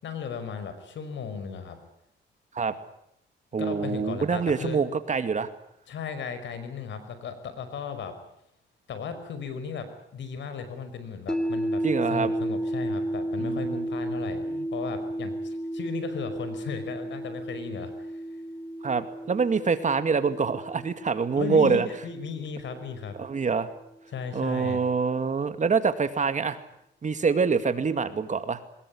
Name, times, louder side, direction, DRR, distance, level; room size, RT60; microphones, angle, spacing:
voice 1, 0.0-1.8 3.6-4.8 5.9-8.2 8.9-11.8 12.1-14.4 14.7-18.2 21.4-23.2 24.1-24.8, left 6 dB, 70° left, 10 dB, 5.6 m, -36 dB
voice 2, 3.5-5.5 11.8-12.3 13.4-13.9 14.5-14.6 18.8-21.9 23.2-23.7 24.3-26.6 27.0-28.6, right 5 dB, 40° right, 10 dB, 2.3 m, -25 dB
sound 1, 11.3-23.4, right 1 dB, 5° left, 2.5 m, -33 dB
23.5 x 21.0 x 8.7 m, 0.76 s
cardioid pair, 90°, 20 cm